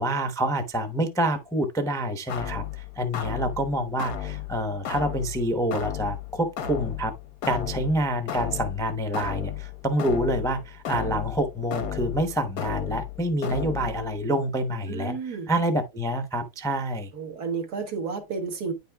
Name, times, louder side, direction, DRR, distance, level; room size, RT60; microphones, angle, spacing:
voice 1, 0.0-7.1 7.5-17.1, right 1 dB, 5° left, 0.4 m, -27 dB
sound 1, 2.3-14.2, left 9 dB, 90° left, 1.5 m, -34 dB
voice 2, 14.9-15.5 17.1-18.7, right 5 dB, 85° right, 2.0 m, -31 dB
9.7 x 5.3 x 2.3 m
omnidirectional pair, 1.6 m